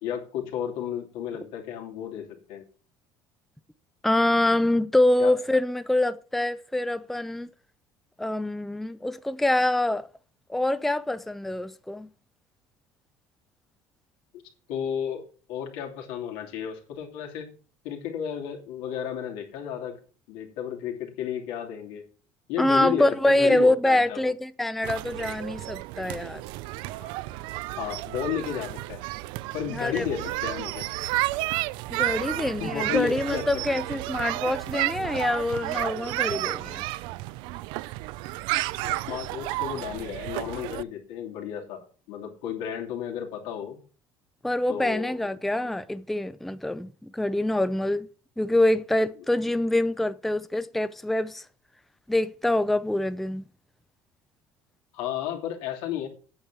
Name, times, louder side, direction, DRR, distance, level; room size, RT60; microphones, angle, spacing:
voice 1, 0.0-2.6 5.2-5.3 14.7-15.2 15.5-17.5 17.8-20.0 20.3-22.0 22.5-24.3 26.9-27.1 27.8-29.0 29.5-30.9 32.2-32.3 32.6-33.6 38.8-43.8 44.7-45.2 45.6-45.7 54.9-56.1, left 9 dB, 80° left, 2.8 m, -33 dB
voice 2, 4.0-7.5 8.2-10.1 10.5-12.1 22.6-26.4 29.7-30.0 31.9-36.8 44.4-48.1 48.4-51.4 52.1-53.5, left 1 dB, ahead, 0.4 m, -25 dB
sound 1, 24.8-40.8, right 18 dB, 75° right, 0.4 m, -32 dB
8.7 x 7.2 x 6.0 m
cardioid pair, 140°, 8 cm